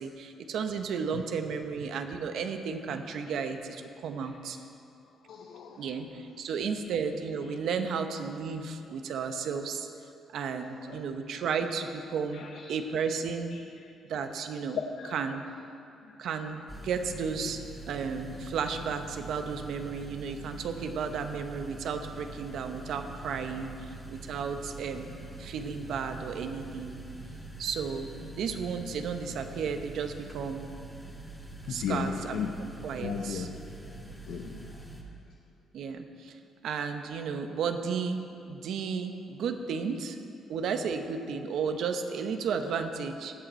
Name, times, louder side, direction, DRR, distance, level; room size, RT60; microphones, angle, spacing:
voice 1, 0.0-4.6 5.8-9.9 10.3-13.6 14.1-14.8 15.1-15.4 16.2-25.1 25.4-27.0 27.6-28.1 28.3-30.7 31.7-32.5 32.8-33.5 35.7-36.4 36.6-40.2 40.5-43.3, right 6 dB, 75° right, 7 dB, 0.9 m, -33 dB
voice 2, 5.2-5.9 6.7-6.8 7.5-7.6 8.5-8.8 10.5-11.0 11.3-11.4 12.3-12.8 13.5-13.9 14.7-15.1 16.0-16.3 31.7-34.9 42.6-42.8, left 6 dB, 80° left, 3 dB, 0.7 m, -38 dB
sound 1, 16.7-35.0, right 2 dB, 10° left, 1.6 m, -44 dB
16.0 x 8.9 x 4.3 m, 2.6 s
cardioid pair, 90°, 0 cm